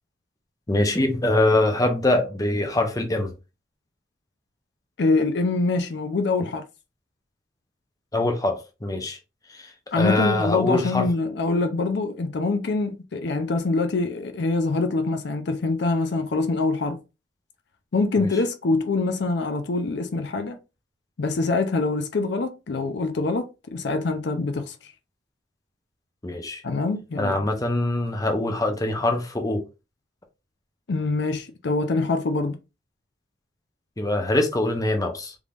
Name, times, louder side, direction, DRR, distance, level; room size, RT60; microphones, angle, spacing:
voice 1, 0.7-3.3 8.1-9.2 9.5-9.7 10.0-11.1 18.2-18.3 26.2-26.6 27.2-29.6 34.0-35.3, left 2 dB, 20° left, 0.7 m, -23 dB
voice 2, 5.0-6.6 9.9-17.0 17.9-20.6 21.2-24.8 26.6-27.5 30.9-32.6, left 3 dB, 60° left, 0.5 m, -24 dB
3.6 x 3.2 x 2.4 m
head